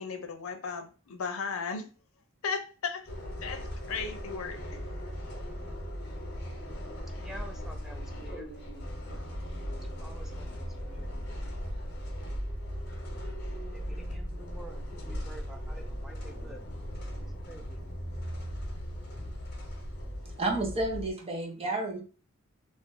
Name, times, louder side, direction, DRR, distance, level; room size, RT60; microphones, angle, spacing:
voice 1, 0.0-1.9 2.4-3.1 3.4-4.8, left 5 dB, 90° left, 0.5 m, -36 dB
sound 1, 3.1-21.1, equal, 55° left, 0.9 m, -38 dB
voice 2, 7.2-8.5 10.0-11.1 13.7-16.6 17.5-17.8, right 1 dB, ahead, 0.3 m, -49 dB
voice 3, 20.4-22.0, right 2 dB, 30° right, 0.7 m, -31 dB
2.5 x 2.5 x 3.6 m
head